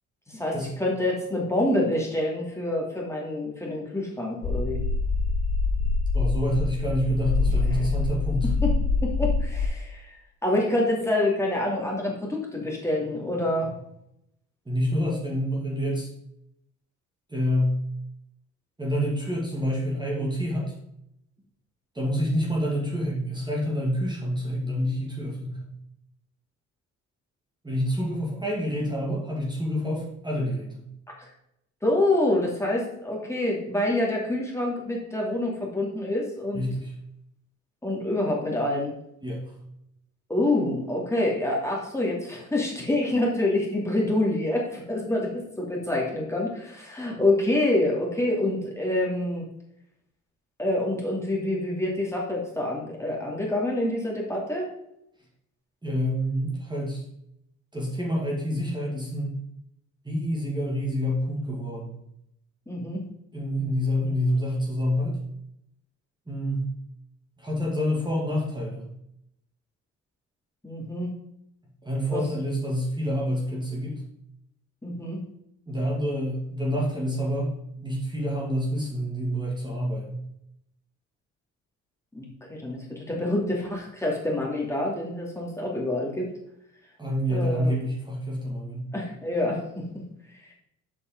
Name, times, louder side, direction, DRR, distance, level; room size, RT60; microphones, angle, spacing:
voice 1, 0.3-4.8 7.7-7.9 8.6-8.7 9.0-13.7 31.2-31.3 31.8-36.7 37.8-38.9 40.3-49.4 50.6-54.7 62.7-63.0 70.6-71.1 72.1-72.2 74.8-75.2 82.1-86.3 87.3-87.8 88.9-89.8 90.3-90.5, left 1 dB, 10° left, -3 dB, 2.5 m, -27 dB
sound 1, 4.4-9.7, left 4 dB, 60° left, 2.4 m, -25 dB
voice 2, 6.1-8.5 14.7-16.1 17.3-17.8 18.8-20.7 21.9-25.7 27.6-30.9 36.5-36.9 39.2-39.5 55.8-57.0 57.7-59.3 60.0-62.0 63.3-65.2 66.3-66.7 67.4-68.9 71.8-74.0 75.7-80.2 87.0-88.9, equal, 15° right, -3 dB, 2.2 m, -27 dB
7.3 x 5.2 x 5.3 m, 0.78 s
cardioid pair, 90°, 30 cm